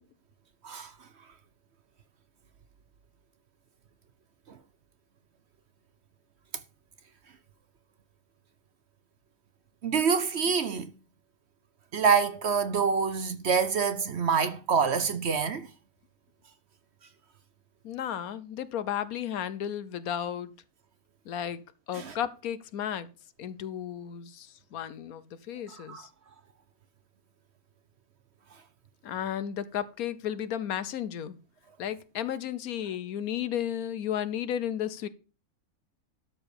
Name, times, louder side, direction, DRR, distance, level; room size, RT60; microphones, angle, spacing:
voice 1, 9.8-10.9 11.9-15.7 21.9-22.1 25.9-26.0, right 6 dB, 55° right, 0.9 m, -26 dB
voice 2, 17.8-20.5 21.3-21.6 21.9-23.1 23.4-26.1 29.0-31.4 31.8-35.1, left 10 dB, 75° left, 1.2 m, -33 dB
12.5 x 4.7 x 6.8 m
omnidirectional pair, 1.6 m